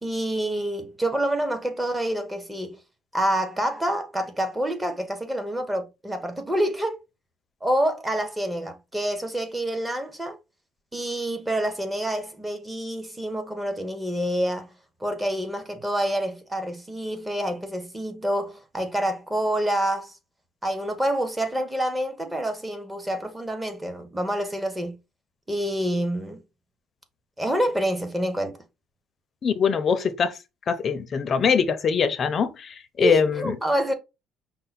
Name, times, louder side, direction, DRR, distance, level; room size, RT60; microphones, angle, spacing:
voice 1, 0.0-2.8 3.1-7.0 7.6-10.4 10.9-14.7 15.0-20.1 20.6-25.0 25.5-26.4 27.4-28.6 33.0-33.9, right 1 dB, 10° right, 0.8 m, -27 dB
voice 2, 29.4-30.3 30.7-33.5, left 6 dB, 35° left, 0.6 m, -23 dB
5.4 x 2.1 x 4.0 m
cardioid pair, 140°, 0 cm